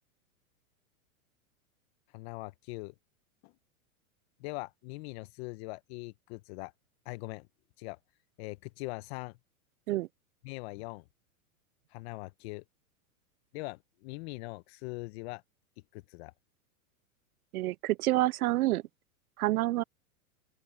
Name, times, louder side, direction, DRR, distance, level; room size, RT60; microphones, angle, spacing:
voice 1, 2.1-2.9 3.4-3.5 4.4-6.7 7.0-7.5 7.8-8.0 8.4-9.3 10.4-11.0 11.9-12.6 13.5-15.4 15.9-16.3, left 23 dB, 45° left, 0.9 m, -41 dB
voice 2, 17.5-18.8 19.4-19.8, right 17 dB, 80° right, 0.5 m, -28 dB
open air
hypercardioid pair, 125°, 43 cm